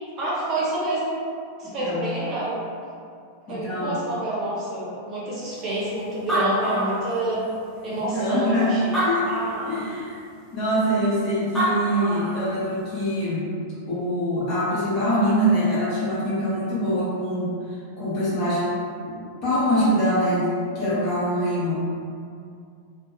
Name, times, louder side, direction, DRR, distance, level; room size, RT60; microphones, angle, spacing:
voice 1, 0.2-1.1 1.6-2.5 3.5-7.4 7.8-9.0, right 1 dB, 35° right, -7 dB, 0.7 m, -28 dB
voice 2, 1.6-2.1 3.5-4.0 7.9-9.3 9.7-10.2 10.5-13.5 13.9-17.5 18.0-18.6 19.0-20.5 20.7-21.8, equal, 40° left, -9 dB, 1.0 m, -24 dB
Animal, 5.8-5.9 6.1-7.5 8.2-8.3 8.8-9.8 11.3-11.4 11.5-12.5, right 1 dB, 5° left, 0.7 m, -26 dB
2.6 x 2.0 x 2.5 m, 2.3 s
figure-of-eight pair, 90°, 0 cm